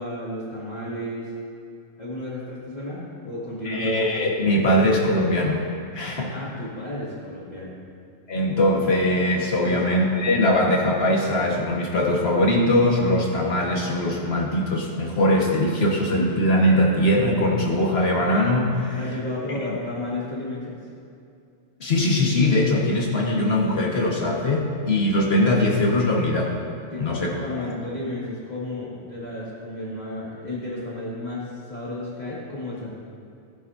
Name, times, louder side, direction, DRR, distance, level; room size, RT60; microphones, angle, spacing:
voice 1, 0.0-1.3 2.0-3.9 6.3-7.8 9.6-9.8 18.9-20.8 26.9-32.9, left 1 dB, 30° left, -8 dB, 2.4 m, -32 dB
voice 2, 3.7-5.6 5.9-6.3 8.3-19.0 21.8-26.5 27.0-27.3, left 1 dB, 50° left, -2 dB, 1.9 m, -21 dB
17.5 x 11.0 x 2.8 m, 2.4 s
omnidirectional pair, 1.3 m